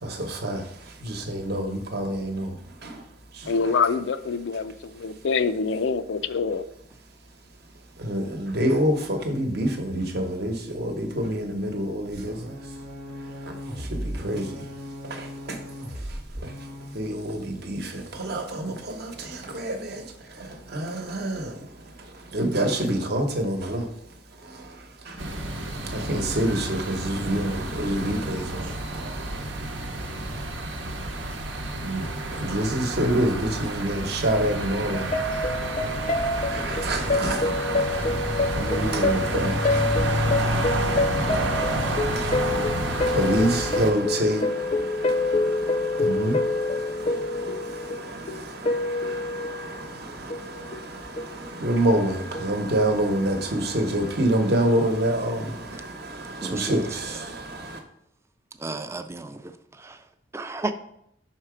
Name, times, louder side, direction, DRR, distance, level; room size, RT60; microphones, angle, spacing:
voice 1, 0.0-3.8 8.0-12.8 13.2-14.7 15.0-30.3 31.8-57.8, right 1 dB, 60° right, 0.9 m, -28 dB
voice 2, 3.5-6.6, left 5 dB, 85° left, 0.4 m, -25 dB
sound 1, 12.1-17.0, equal, 40° right, 0.8 m, -37 dB
sound 2, 25.2-43.9, right 1 dB, 85° right, 0.9 m, -30 dB
sound 3, 34.9-49.8 50.3-50.9 51.2-51.3 52.3-52.5, left 2 dB, 40° left, 0.5 m, -27 dB
voice 3, 56.4-56.8 58.6-60.0 60.3-60.7, right 2 dB, 15° right, 0.3 m, -32 dB
5.7 x 4.4 x 4.9 m
head